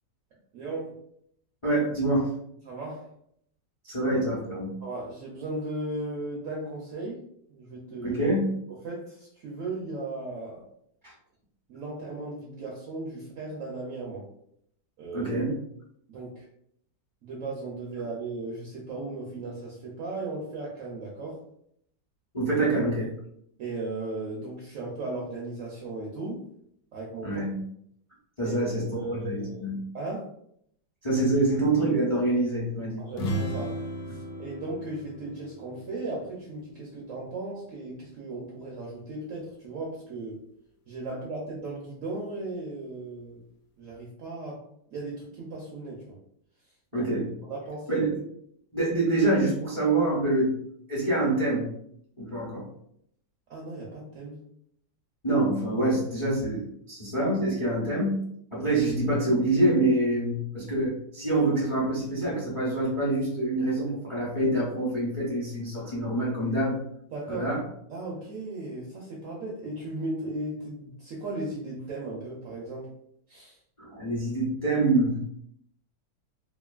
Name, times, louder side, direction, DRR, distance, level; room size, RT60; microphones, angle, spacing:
voice 1, 0.5-1.0 2.6-3.1 4.8-7.2 7.5-8.2 8.7-10.6 11.7-14.3 15.0-15.3 16.1-16.5 17.2-21.4 23.6-26.5 26.9-27.4 28.4-30.3 33.0-33.8 34.1-40.4 40.9-43.5 43.8-44.6 44.9-46.2 46.9-47.1 47.5-48.1 53.5-54.5 67.1-67.5 67.9-72.9 73.3-73.6, right 2 dB, 70° right, -3 dB, 0.8 m, -36 dB
voice 2, 1.6-2.3 3.9-4.7 8.0-8.5 11.0-11.1 15.1-15.5 22.3-23.1 27.2-27.5 28.4-28.8 29.1-29.7 31.0-33.0 46.9-47.3 47.9-48.1 48.7-50.6 50.9-51.7 52.2-52.7 55.2-58.2 58.5-66.8 67.3-67.6 73.8-75.2, right 2 dB, 30° left, -6 dB, 0.5 m, -26 dB
sound 1, 33.1-36.8, equal, 85° left, 1.2 m, -35 dB
3.0 x 2.4 x 2.3 m, 0.70 s
omnidirectional pair, 1.9 m